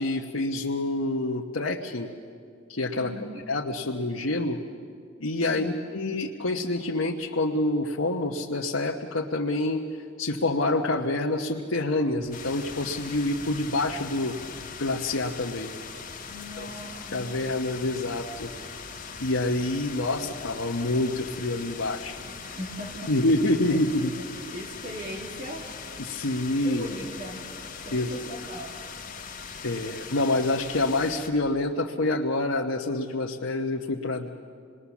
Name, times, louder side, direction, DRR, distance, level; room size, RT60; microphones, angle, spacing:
voice 1, 0.0-2.1 2.7-3.1 3.5-4.6 5.2-9.8 10.2-14.4 14.8-15.7 16.6-16.7 17.1-18.5 19.2-22.2 23.1-24.1 26.0-26.9 27.9-28.1 29.6-34.3, left 2 dB, 90° left, 0 dB, 1.1 m, -27 dB
voice 2, 2.9-3.4 5.4-5.8 16.3-17.2 22.4-23.1 23.7-25.7 26.6-27.4 27.8-28.7, equal, 40° right, -1 dB, 2.4 m, -39 dB
sound 1, 12.2-31.5, right 1 dB, 75° right, 3.2 m, -50 dB
sound 2, 12.3-31.3, left 6 dB, 40° left, 1.7 m, -41 dB
27.5 x 20.5 x 7.2 m, 2.3 s
head